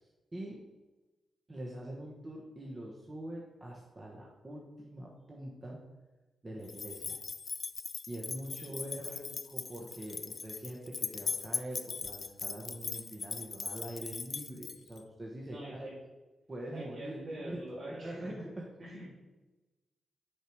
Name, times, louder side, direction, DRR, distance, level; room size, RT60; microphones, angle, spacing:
voice 1, 1.5-5.8 6.4-7.2 8.1-15.9 16.5-17.6 17.9-18.6, right 1 dB, 30° right, -2 dB, 1.3 m, -44 dB
sound 1, 6.7-15.0, left 5 dB, 55° left, 0.4 m, -39 dB
voice 2, 8.5-9.2 15.4-15.9 16.7-18.3 18.8-19.1, right 1 dB, 60° right, -8 dB, 2.4 m, -45 dB
6.4 x 5.1 x 4.7 m, 1.1 s
supercardioid pair, 50°, 0 cm